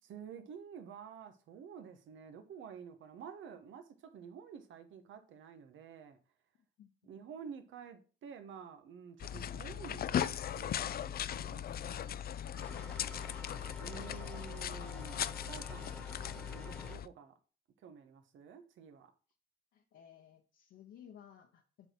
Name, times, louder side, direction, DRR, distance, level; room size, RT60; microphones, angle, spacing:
voice 1, 0.0-6.2 7.0-12.1 13.8-17.3 17.8-19.1, right 7 dB, 75° right, 1.2 m, -50 dB
sound 1, 9.2-17.1, left 9 dB, 50° left, 0.4 m, -38 dB
sound 2, 12.6-17.0, left 1 dB, 5° left, 1.4 m, -51 dB
voice 2, 12.7-14.3 15.7-16.7 19.7-21.9, left 9 dB, 75° left, 1.1 m, -59 dB
7.7 x 4.6 x 4.5 m
cardioid pair, 90°, 20 cm